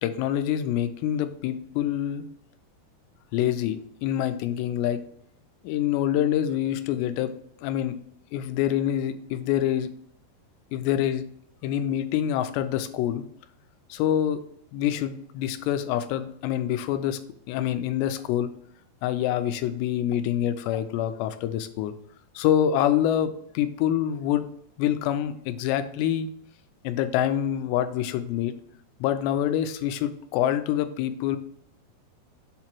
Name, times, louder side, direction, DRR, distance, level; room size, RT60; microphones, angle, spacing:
voice 1, 0.0-2.3 3.3-5.0 5.6-7.3 7.6-8.0 8.3-9.9 10.7-11.2 11.6-13.2 13.9-14.4 14.7-17.2 17.5-18.5 19.0-21.9 22.4-24.5 24.8-26.3 26.8-28.5 29.0-31.4, left 11 dB, 85° left, 10 dB, 2.8 m, -26 dB
7.4 x 2.9 x 5.9 m, 0.70 s
omnidirectional pair, 4.9 m